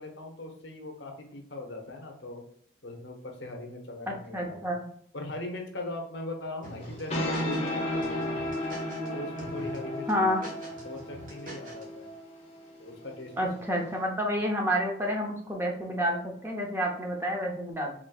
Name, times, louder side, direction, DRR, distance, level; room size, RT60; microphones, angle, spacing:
voice 1, 0.0-2.4 2.8-4.6 5.1-8.7 9.1-10.3 10.8-12.1 12.8-13.3, left 2 dB, 70° left, 2 dB, 0.8 m, -40 dB
voice 2, 4.1-4.8 10.1-10.4 13.4-17.9, equal, 10° right, 0 dB, 0.5 m, -29 dB
sound 1, 6.6-7.7 8.0-9.1 9.4-9.8 10.1-11.8, right 1 dB, 45° right, 1.2 m, -44 dB
sound 2, 6.8-14.0, left 1 dB, 30° left, 0.8 m, -34 dB
4.2 x 3.2 x 2.3 m, 0.65 s
head